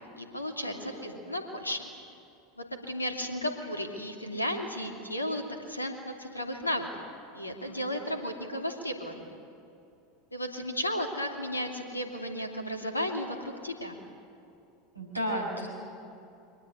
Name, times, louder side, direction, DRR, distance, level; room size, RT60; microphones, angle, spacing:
voice 1, 0.0-1.8 2.6-6.9 7.3-9.3 10.3-14.0, equal, 90° left, 4 dB, 2.7 m, -34 dB
voice 2, 0.6-1.2 7.6-8.0 14.9-15.7, equal, 90° right, 1 dB, 5.9 m, -35 dB
24.5 x 19.5 x 9.8 m, 2.7 s
figure-of-eight pair, 80°, 0 cm